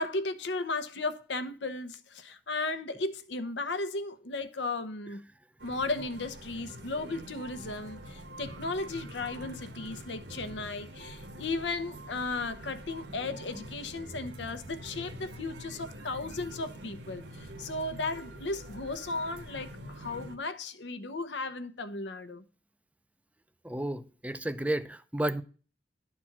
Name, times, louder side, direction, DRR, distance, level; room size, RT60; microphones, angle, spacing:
voice 1, 0.0-5.2 5.6-22.4, left 3 dB, 75° left, 0.9 m, -35 dB
sound 1, 5.6-20.4, right 1 dB, 70° right, 1.3 m, -45 dB
voice 2, 23.6-25.4, right 1 dB, 10° right, 0.5 m, -32 dB
11.5 x 4.3 x 5.9 m
head